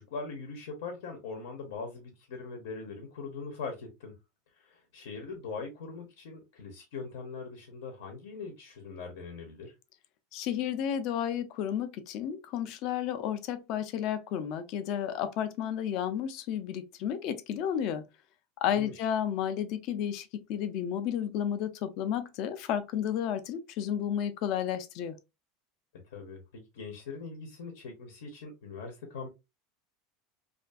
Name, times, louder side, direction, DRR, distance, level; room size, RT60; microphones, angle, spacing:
voice 1, 0.0-4.1 4.6-9.7 18.7-19.1 26.1-29.3, left 4 dB, 90° left, 0.7 m, -41 dB
voice 2, 10.3-18.0 18.6-25.2, left 9 dB, 40° left, 0.3 m, -32 dB
2.5 x 2.4 x 2.3 m
supercardioid pair, 170°, 0 cm